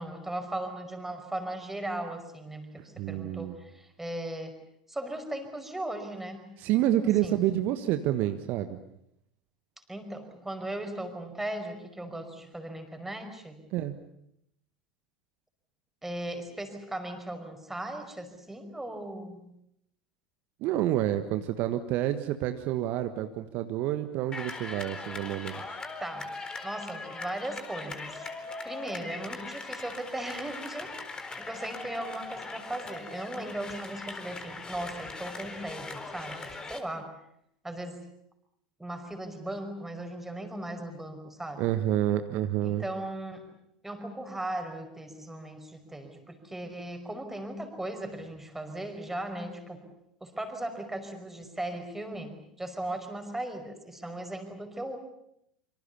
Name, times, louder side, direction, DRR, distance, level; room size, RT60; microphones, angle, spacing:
voice 1, 0.0-4.5 4.9-6.5 7.2-7.4 9.9-13.6 16.0-19.4 26.0-26.3 26.6-28.3 28.6-30.9 31.4-37.1 37.6-38.0 38.8-41.6 42.6-43.4 43.8-49.8 50.2-55.0, right 1 dB, 5° right, 6 dB, 5.4 m, -37 dB
voice 2, 3.0-3.5 6.6-8.8 13.7-13.9 20.6-26.0 41.6-42.8, right 13 dB, 50° right, 8 dB, 1.5 m, -28 dB
sound 1, 24.3-36.8, left 3 dB, 20° left, 4.2 m, -40 dB
26.5 x 25.5 x 6.9 m, 0.76 s
figure-of-eight pair, 75°, 4 cm